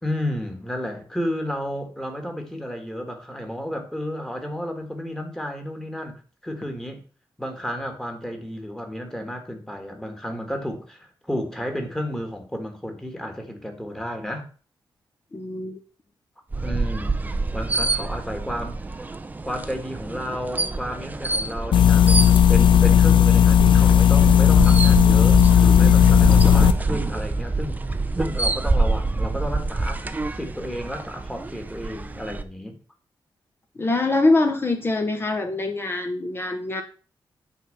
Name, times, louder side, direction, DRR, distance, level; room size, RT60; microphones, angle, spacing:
voice 1, 0.0-6.1 6.4-7.0 7.4-14.5 16.6-19.1 19.4-27.8 28.1-32.7, equal, 5° left, 1.6 m, -32 dB
voice 2, 15.3-15.8 33.8-36.8, left 2 dB, 25° left, 0.9 m, -23 dB
sound 1, 16.5-32.4, right 3 dB, 20° right, 0.5 m, -27 dB
sound 2, 21.7-26.7, left 9 dB, 70° left, 0.6 m, -14 dB
9.2 x 4.0 x 6.6 m
wide cardioid pair, 165°, 9 cm